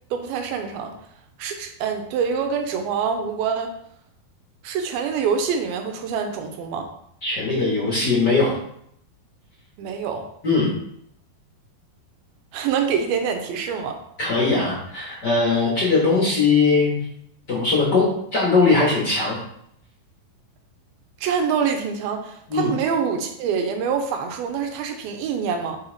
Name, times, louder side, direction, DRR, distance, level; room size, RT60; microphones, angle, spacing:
voice 1, 0.1-0.9 1.4-3.7 4.6-6.9 9.8-10.3 12.5-14.0 21.2-25.8, right 6 dB, 85° right, 5 dB, 2.5 m, -25 dB
voice 2, 7.2-8.5 10.4-10.7 14.2-17.0 17.5-18.1 18.3-19.4 22.5-22.7, left 4 dB, 55° left, -6 dB, 1.1 m, -20 dB
5.5 x 4.8 x 4.0 m, 0.72 s
omnidirectional pair, 4.3 m